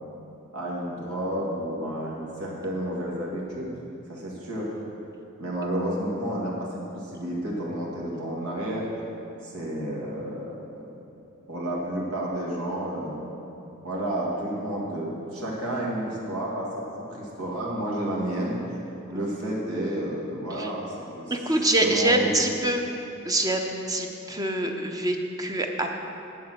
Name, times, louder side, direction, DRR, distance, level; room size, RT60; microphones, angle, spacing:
voice 1, 0.5-3.7 4.1-4.8 5.4-6.7 6.9-8.9 9.4-10.6 11.5-13.3 13.8-18.8 19.1-20.9 21.2-21.3 21.8-22.3, right 1 dB, 75° right, -4 dB, 2.0 m, -31 dB
voice 2, 21.3-22.9 23.2-26.0, right 1 dB, 15° right, 3 dB, 0.7 m, -25 dB
8.7 x 7.2 x 7.4 m, 2.8 s
head